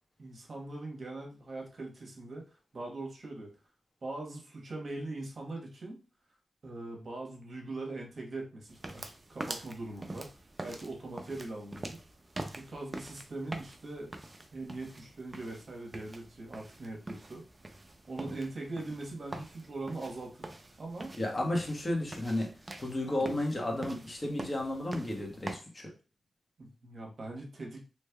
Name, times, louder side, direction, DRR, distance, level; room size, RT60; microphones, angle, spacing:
voice 1, 0.2-2.4 2.7-3.5 4.0-6.0 6.6-10.3 10.6-12.0 12.6-14.1 14.5-17.4 18.1-20.5 20.8-21.1 23.1-23.3 26.6-27.8, right 2 dB, 60° right, 0 dB, 1.1 m, -41 dB
sound 1, 8.7-25.6, right 2 dB, 30° right, 0.6 m, -45 dB
voice 2, 21.2-22.5 22.8-25.9, left 1 dB, 35° left, 0 dB, 1.2 m, -33 dB
3.2 x 3.1 x 2.3 m, 0.34 s
cardioid pair, 55°, 0 cm